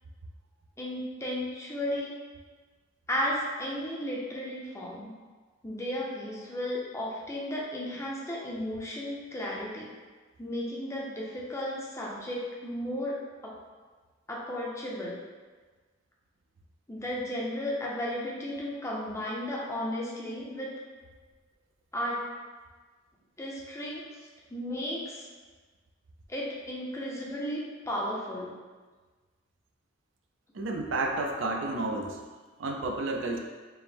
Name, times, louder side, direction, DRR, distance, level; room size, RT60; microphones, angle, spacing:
voice 1, 0.8-2.1 3.1-5.1 5.6-9.9 10.4-13.6 14.3-15.2 16.9-20.7 21.9-22.2 23.4-24.2 24.5-25.3 26.3-28.5, left 1 dB, 15° left, -4 dB, 0.5 m, -34 dB
voice 2, 30.5-32.2 32.6-33.4, right 2 dB, 75° right, 2 dB, 0.4 m, -31 dB
4.6 x 2.0 x 3.4 m, 1.4 s
head